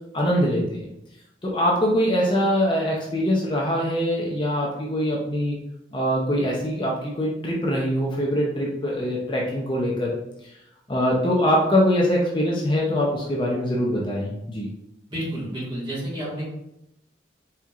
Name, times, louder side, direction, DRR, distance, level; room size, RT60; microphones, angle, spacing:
voice 1, 0.1-0.9 1.4-5.6 5.9-10.2 10.4-10.5 10.9-14.7, equal, 25° left, -3 dB, 0.6 m, -23 dB
voice 2, 15.1-16.5, right 1 dB, 25° right, -7 dB, 1.5 m, -30 dB
4.4 x 3.6 x 2.4 m, 0.82 s
head